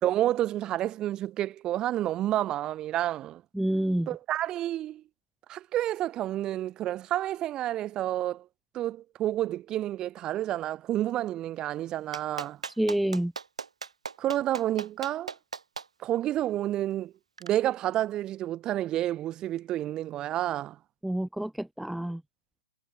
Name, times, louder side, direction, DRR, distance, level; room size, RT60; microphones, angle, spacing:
voice 1, 0.0-3.4 4.1-5.0 5.5-8.5 8.7-12.6 14.2-15.3 16.0-17.1 17.4-20.8, right 13 dB, 20° right, 1.2 m, -29 dB
voice 2, 3.5-4.1 12.8-13.3 21.0-22.2, right 1 dB, ahead, 0.6 m, -28 dB
Clapping, 12.1-15.9 17.4-17.5, right 5 dB, 85° right, 4.3 m, -37 dB
hypercardioid pair, 135°, 3 cm